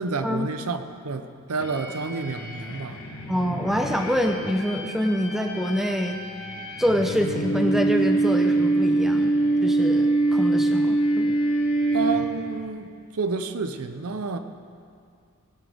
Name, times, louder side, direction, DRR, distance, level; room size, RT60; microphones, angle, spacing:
voice 1, 0.0-2.9 11.9-12.9 13.1-14.4, right 4 dB, 80° right, 9 dB, 0.7 m, -29 dB
sound 1, 1.6-12.7, right 2 dB, 75° left, 1.5 m, -25 dB
voice 2, 3.3-6.2 6.8-9.4 9.6-11.4, equal, ahead, 4 dB, 0.7 m, -25 dB
17.0 x 11.0 x 3.5 m, 2.3 s
head